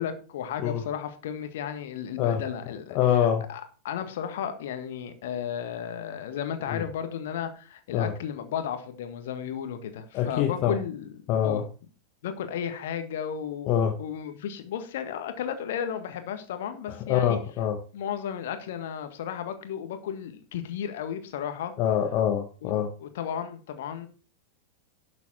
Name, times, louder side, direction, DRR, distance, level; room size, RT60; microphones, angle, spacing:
voice 1, 0.0-11.1 11.4-11.6 12.2-13.7 14.0-17.4 17.9-21.7 22.6-22.7 23.0-24.1, left 8 dB, 55° left, 1.6 m, -34 dB
voice 2, 2.9-3.4 6.7-6.8 7.9-8.1 10.1-10.8 11.3-11.6 13.7-13.9 16.9-17.8 21.8-22.9, left 9 dB, 40° left, 1.0 m, -25 dB
12.0 x 7.0 x 4.2 m
figure-of-eight pair, 90°, 0 cm